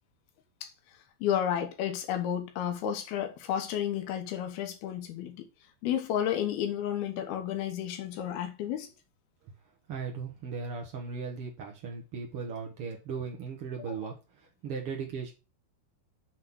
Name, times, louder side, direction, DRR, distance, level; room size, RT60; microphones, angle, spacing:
voice 1, 1.2-5.5 5.8-8.9 13.9-14.1, left 10 dB, 70° left, 2.8 m, -32 dB
voice 2, 9.9-14.1 14.6-15.3, right 5 dB, 75° right, 1.3 m, -37 dB
7.5 x 3.9 x 6.3 m
omnidirectional pair, 4.9 m